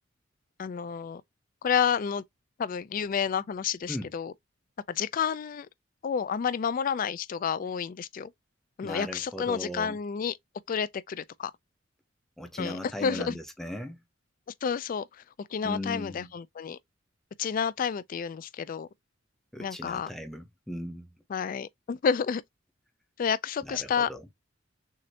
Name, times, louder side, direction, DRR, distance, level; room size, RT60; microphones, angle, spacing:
voice 1, 0.6-1.2 1.6-2.2 2.6-4.3 4.9-5.7 6.0-8.3 8.8-10.4 10.7-11.5 12.6-13.4 14.6-16.8 17.4-18.9 19.6-20.1 21.3-22.4 23.2-24.1, left 7 dB, 45° left, 0.3 m, -30 dB
voice 2, 8.8-10.0 12.4-14.0 15.6-16.3 19.5-21.1 23.6-24.2, left 1 dB, ahead, 0.7 m, -37 dB
6.4 x 2.5 x 2.8 m
head